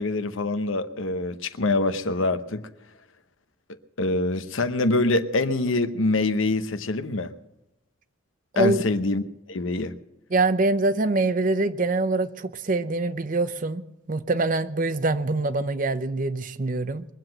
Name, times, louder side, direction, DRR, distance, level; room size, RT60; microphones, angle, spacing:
voice 1, 0.0-2.7 4.0-7.3 8.6-9.2 9.5-9.9, left 2 dB, 70° left, 0.8 m, -24 dB
voice 2, 10.3-17.1, right 2 dB, 40° right, 0.6 m, -24 dB
22.0 x 7.8 x 7.8 m
head